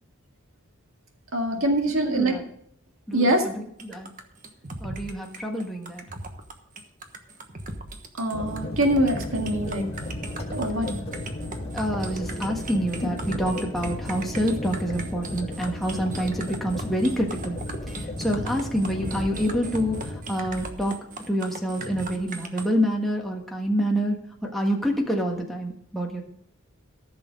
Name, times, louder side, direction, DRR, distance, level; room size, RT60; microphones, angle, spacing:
voice 1, 1.3-2.4 3.1-3.4 8.2-9.9 10.5-11.0, right 1 dB, 70° right, 3 dB, 2.0 m, -24 dB
voice 2, 1.9-2.4 3.1-4.1 4.8-6.0 11.7-17.6 17.9-21.0 21.3-24.2 24.4-26.2, equal, ahead, -1 dB, 1.4 m, -27 dB
sound 1, 3.8-22.7, right 2 dB, 40° right, 1.2 m, -38 dB
sound 2, 8.3-20.2, left 1 dB, 30° left, 1.9 m, -34 dB
14.5 x 6.5 x 5.2 m, 0.68 s
head